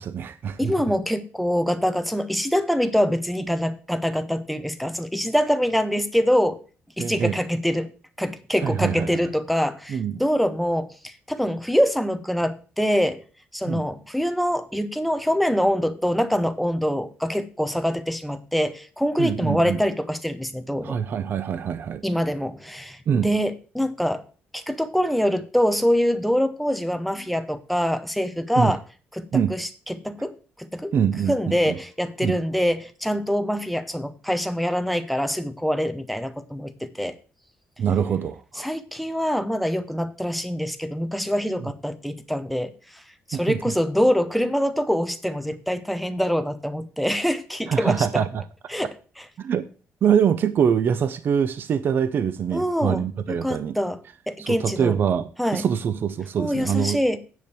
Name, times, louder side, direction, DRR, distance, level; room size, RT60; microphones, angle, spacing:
voice 1, 0.0-0.7 7.0-7.4 8.6-9.3 9.9-10.1 13.7-13.8 19.2-19.8 20.8-22.0 23.1-23.3 28.6-28.7 29.3-29.5 30.9-31.8 32.2-32.4 37.8-38.7 41.6-41.7 43.3-43.6 47.7-48.4 49.4-49.6 50.0-53.7 54.4-57.0, right 7 dB, 45° right, 0.6 m, -24 dB
voice 2, 0.6-6.6 7.0-7.9 8.2-13.2 13.5-21.0 22.0-24.2 24.5-28.8 29.1-30.9 31.3-37.1 38.6-43.0 43.3-48.2 48.7-48.9 52.5-54.9 55.4-55.7 56.4-57.2, equal, ahead, 0.7 m, -24 dB
9.4 x 5.1 x 6.9 m
cardioid pair, 165°, 5 cm